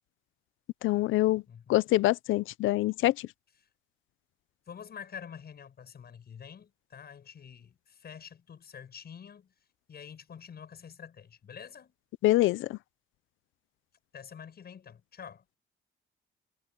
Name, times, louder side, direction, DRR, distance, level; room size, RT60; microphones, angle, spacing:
voice 1, 0.8-1.4 1.7-3.3 12.2-12.8, left 16 dB, 85° left, 0.6 m, -25 dB
voice 2, 1.5-1.8 4.7-9.5 9.9-11.9 14.1-15.4, left 7 dB, 55° left, 6.5 m, -47 dB
cardioid pair, 90°, 20 cm